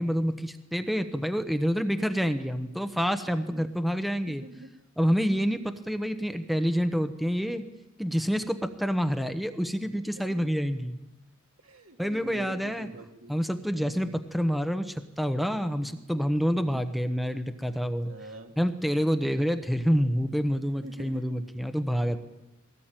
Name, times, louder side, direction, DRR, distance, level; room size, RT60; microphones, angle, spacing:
voice 1, 0.0-4.4 5.0-7.6 8.0-11.0 12.0-12.9 13.3-18.1 18.6-22.2, equal, ahead, 8 dB, 1.0 m, -27 dB
voice 2, 4.3-4.7 9.8-9.9 10.1-10.4 11.6-13.4 13.8-14.1 15.8-16.0 16.5-16.8 18.0-18.5 19.3-19.4 20.8-21.3, right 1 dB, 75° right, 4 dB, 2.7 m, -46 dB
21.5 x 17.5 x 9.0 m, 0.95 s
head